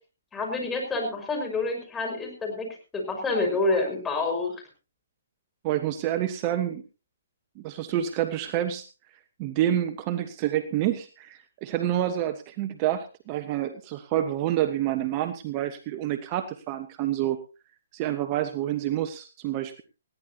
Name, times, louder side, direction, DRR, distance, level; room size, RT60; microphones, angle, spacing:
voice 1, 0.3-4.6, left 3 dB, 10° left, 2 dB, 5.7 m, -28 dB
voice 2, 5.6-6.8 7.6-8.9 9.4-17.4 17.9-19.8, right 12 dB, 30° right, 9 dB, 1.2 m, -28 dB
20.0 x 16.0 x 2.9 m, 0.33 s
hypercardioid pair, 140°, 0 cm